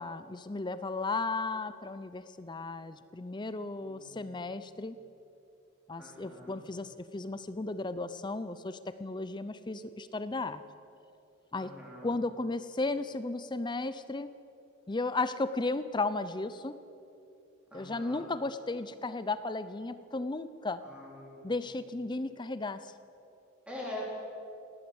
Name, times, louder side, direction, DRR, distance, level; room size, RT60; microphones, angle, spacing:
voice 1, 0.0-5.0 5.9-10.6 11.5-11.7 12.0-14.3 14.9-16.8 17.7-20.8 21.4-22.9, left 3 dB, 20° left, 13 dB, 0.5 m, -35 dB
voice 2, 3.8-4.4 6.0-6.6 11.5-12.1 17.7-18.3 20.8-21.5 23.7-24.0, left 1 dB, 5° right, -5 dB, 3.9 m, -44 dB
19.5 x 17.0 x 8.0 m, 2.8 s
head